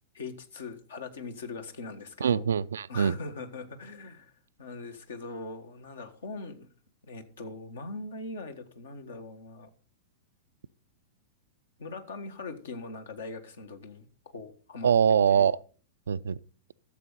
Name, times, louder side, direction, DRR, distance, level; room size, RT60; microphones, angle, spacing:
voice 1, 0.1-2.4 2.9-4.3 4.6-6.7 7.0-9.7 11.8-14.1 14.3-14.9 15.3-15.5, left 3 dB, 65° left, 1.5 m, -41 dB
voice 2, 2.2-3.2 14.8-15.6 16.1-16.4, right 7 dB, 70° right, 0.4 m, -23 dB
13.0 x 7.5 x 4.1 m
figure-of-eight pair, 95°, 0 cm